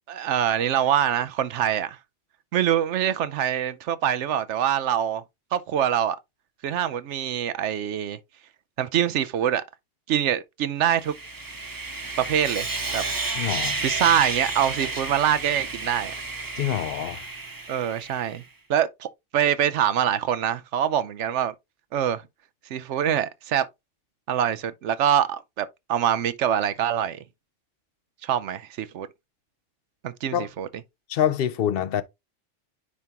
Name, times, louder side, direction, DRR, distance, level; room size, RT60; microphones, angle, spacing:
voice 1, 0.1-2.0 2.5-5.2 5.5-6.2 6.6-8.2 8.8-9.6 10.1-11.1 12.2-12.7 12.9-13.0 13.8-16.1 17.7-18.4 18.7-21.5 21.9-22.2 22.7-23.7 24.3-27.2 28.2-29.1 30.0-30.7, right 10 dB, 75° right, 0.9 m, -24 dB
Sawing, 10.9-18.4, right 3 dB, 20° right, 0.6 m, -31 dB
voice 2, 13.4-13.8 16.6-17.3 30.3-30.5 31.1-32.0, left 10 dB, 60° left, 0.8 m, -25 dB
9.6 x 3.5 x 2.8 m
omnidirectional pair, 1.3 m